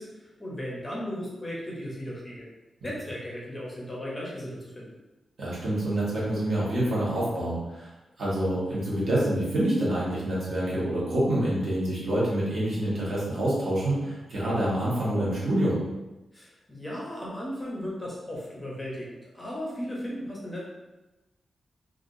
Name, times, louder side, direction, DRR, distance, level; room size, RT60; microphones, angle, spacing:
voice 1, 0.0-2.5 2.8-5.0 16.3-20.6, equal, 15° left, -5 dB, 0.7 m, -36 dB
voice 2, 5.4-7.9 8.2-15.8, right 1 dB, 60° right, -8 dB, 1.2 m, -27 dB
3.4 x 2.4 x 2.5 m, 1.1 s
wide cardioid pair, 165°, 0 cm